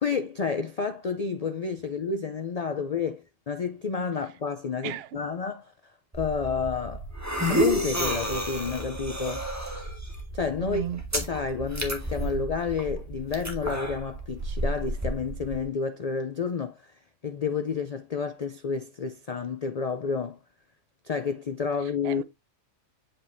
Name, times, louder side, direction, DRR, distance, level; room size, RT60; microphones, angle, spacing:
voice 1, 0.0-5.7 6.1-7.1 7.5-9.5 10.3-10.9 11.1-16.9 17.2-20.4 21.0-22.2, left 5 dB, 70° left, 0.3 m, -30 dB
voice 2, 4.8-5.2 10.6-11.0 21.8-22.2, right 10 dB, 65° right, 0.6 m, -35 dB
sound 1, 6.1-15.6, right 1 dB, 10° right, 1.4 m, -31 dB
7.6 x 5.2 x 2.6 m
omnidirectional pair, 1.4 m